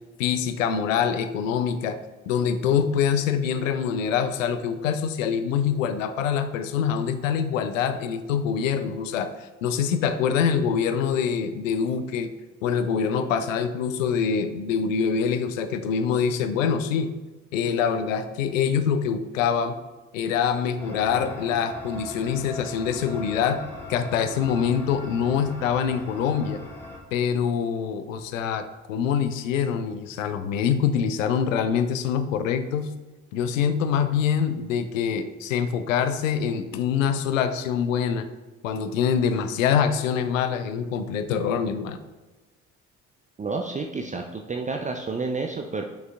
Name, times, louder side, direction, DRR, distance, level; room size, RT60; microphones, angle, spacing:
voice 1, 0.2-2.0 2.3-12.3 12.6-17.1 17.5-19.8 20.1-23.6 23.9-26.6 27.1-32.9 33.3-38.3 38.6-42.0, left 7 dB, 75° left, 10 dB, 0.6 m, -25 dB
sound 1, 20.8-27.0, left 2 dB, 5° left, 2.3 m, -40 dB
voice 2, 43.4-45.8, right 4 dB, 20° right, 3 dB, 0.6 m, -30 dB
10.0 x 6.1 x 2.4 m, 1.2 s
figure-of-eight pair, 45°, 39 cm